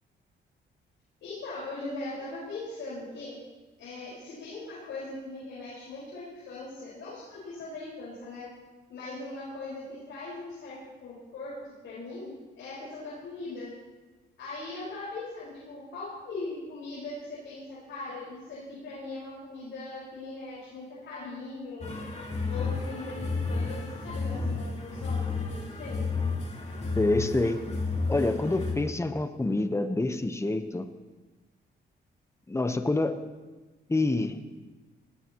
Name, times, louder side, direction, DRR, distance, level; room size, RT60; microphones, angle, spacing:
voice 1, 1.2-3.4 3.8-8.5 8.9-13.7 14.4-21.9 22.4-26.0, left 2 dB, 85° left, -8 dB, 5.4 m, -40 dB
sound 1, 21.8-28.8, left 4 dB, 35° left, 3.0 m, -32 dB
voice 2, 27.0-27.6 28.1-30.9 32.5-33.2 33.9-34.4, left 2 dB, 15° left, 9 dB, 1.1 m, -27 dB
19.0 x 17.5 x 3.1 m, 1.2 s
cardioid pair, 85°, 19 cm